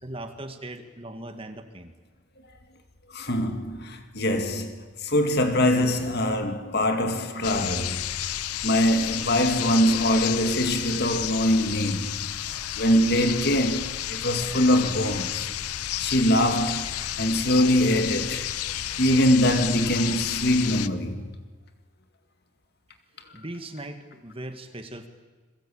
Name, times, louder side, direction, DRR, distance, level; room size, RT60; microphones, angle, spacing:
voice 1, 0.0-1.9 23.3-25.1, right 1 dB, 25° right, 1.9 m, -39 dB
voice 2, 3.1-8.0 8.6-15.5 16.0-18.5 19.0-21.2, equal, 45° left, 2.2 m, -23 dB
sound 1, 7.4-20.9, left 11 dB, 90° left, 0.8 m, -31 dB
30.0 x 22.0 x 8.8 m
head